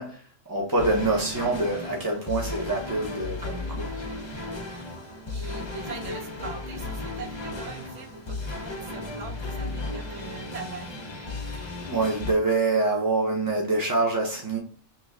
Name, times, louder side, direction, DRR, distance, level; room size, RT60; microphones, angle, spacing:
voice 1, 0.0-3.9 11.8-14.6, right 2 dB, 30° right, 0.4 m, -26 dB
sound 1, 0.8-12.3, left 2 dB, 30° left, 0.5 m, -35 dB
voice 2, 5.3-11.1, right 4 dB, 70° right, 1.1 m, -41 dB
3.1 x 2.8 x 3.6 m
omnidirectional pair, 1.3 m